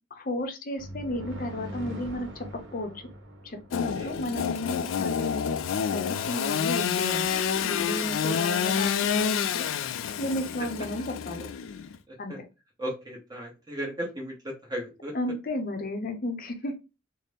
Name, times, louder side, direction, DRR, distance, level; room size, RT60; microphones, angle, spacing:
voice 1, 0.1-2.9 3.4-5.3 5.9-7.3 7.6-9.6 10.2-11.5 12.2-12.3 15.1-16.8, left 1 dB, 45° left, 6 dB, 0.6 m, -33 dB
sound 1, 0.8-4.5, equal, 60° right, 0.9 m, -42 dB
Engine / Sawing, 3.7-12.0, left 7 dB, 80° left, 0.3 m, -28 dB
voice 2, 8.2-8.7 10.6-10.7 12.1-12.4 12.8-15.1, right 1 dB, 20° right, -1 dB, 0.9 m, -36 dB
4.0 x 2.0 x 3.3 m, 0.28 s
head